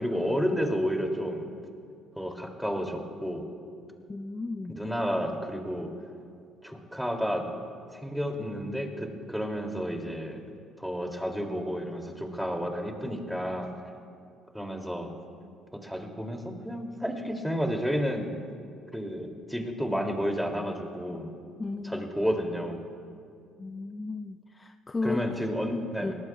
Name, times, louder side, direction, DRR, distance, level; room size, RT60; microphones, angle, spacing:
voice 1, 0.0-1.5 2.2-3.5 4.7-5.9 6.6-7.5 7.9-10.4 10.8-13.7 14.5-15.1 15.7-18.3 18.9-21.3 21.8-22.8 25.0-26.2, equal, ahead, 2 dB, 2.8 m, -31 dB
voice 2, 4.1-4.7 21.6-22.0 23.6-25.2 25.6-26.1, left 3 dB, 25° left, 7 dB, 0.5 m, -34 dB
23.0 x 18.5 x 2.4 m, 2.3 s
hypercardioid pair, 55°, 0 cm